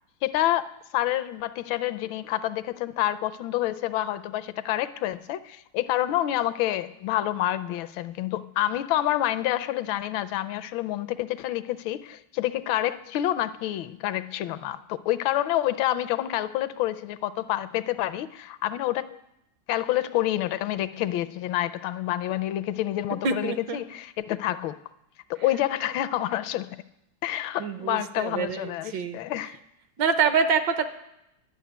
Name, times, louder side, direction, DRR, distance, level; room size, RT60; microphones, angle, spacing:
voice 1, 0.2-19.2 19.7-24.8 25.3-26.8 27.2-29.6, left 13 dB, 80° left, 1.3 m, -28 dB
voice 2, 23.2-23.8 27.6-29.2 30.0-30.8, right 5 dB, 70° right, 1.4 m, -26 dB
11.0 x 6.4 x 9.3 m
omnidirectional pair, 2.2 m